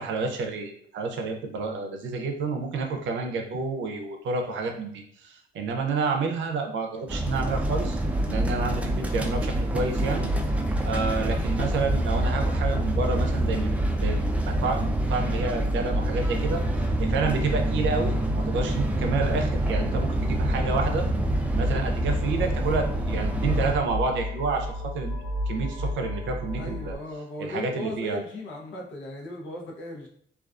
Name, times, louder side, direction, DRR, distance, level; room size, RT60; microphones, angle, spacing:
voice 1, 0.0-8.0 8.3-10.3 10.8-13.7 14.0-16.6 17.0-21.1 21.5-24.7 24.9-25.1 25.5-26.9 27.4-28.2, right 4 dB, 70° right, 4 dB, 0.5 m, -29 dB
sound 1, 7.1-23.7, right 1 dB, 5° right, 0.3 m, -27 dB
sound 2, 7.5-26.9, equal, 25° right, 0.9 m, -31 dB
voice 2, 26.6-30.1, left 1 dB, 70° left, -1 dB, 0.7 m, -37 dB
2.3 x 2.3 x 2.4 m, 0.64 s
cardioid pair, 90°, 20 cm